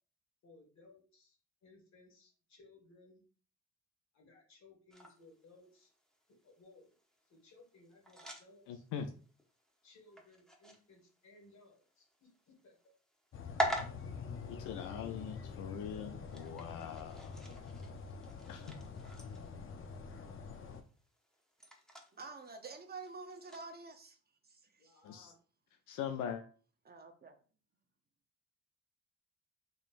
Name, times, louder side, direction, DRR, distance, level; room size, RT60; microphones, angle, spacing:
voice 1, 0.4-3.2 4.1-5.9 6.4-6.9 7.3-8.8 9.8-12.8 24.8-25.4, left 2 dB, 65° left, 1.7 m, -62 dB
sound 1, 4.9-23.7, equal, ahead, 0.9 m, -46 dB
voice 2, 8.7-9.1 14.5-17.3 18.5-18.7 25.0-25.3 25.9-26.4, left 8 dB, 85° left, 0.5 m, -42 dB
sound 2, 13.3-20.8, left 5 dB, 45° left, 0.7 m, -46 dB
voice 3, 22.1-24.2 24.4-25.0 26.8-27.3, right 4 dB, 30° right, 0.7 m, -49 dB
3.8 x 3.7 x 2.5 m
cardioid pair, 90°, 30 cm